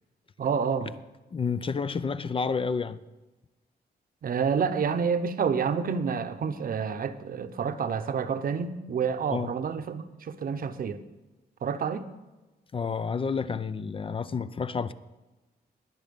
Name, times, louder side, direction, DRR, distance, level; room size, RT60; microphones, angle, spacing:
voice 1, 0.4-0.9 4.2-11.0 11.6-12.1, right 6 dB, 60° right, 0.9 m, -28 dB
voice 2, 1.3-3.0 9.3-9.5 12.7-14.9, left 5 dB, 30° left, 0.5 m, -30 dB
20.5 x 7.4 x 5.3 m
cardioid pair, 115°, 17 cm